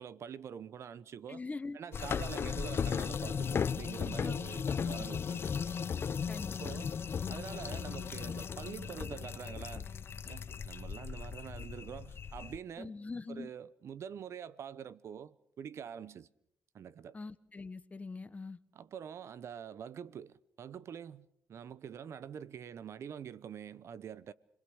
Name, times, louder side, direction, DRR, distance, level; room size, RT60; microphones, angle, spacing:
voice 1, 0.0-1.4 1.7-5.6 6.6-6.9 7.3-9.9 10.3-13.0 13.3-16.3 16.7-17.2 18.7-24.3, right 8 dB, 65° right, 0.9 m, -45 dB
voice 2, 1.3-1.8 4.2-4.4 6.3-6.9 12.8-13.5 17.1-18.6, left 3 dB, 30° left, 1.3 m, -43 dB
sound 1, 1.9-12.6, left 6 dB, 50° left, 0.9 m, -36 dB
30.0 x 20.5 x 6.4 m
cardioid pair, 75°, 5 cm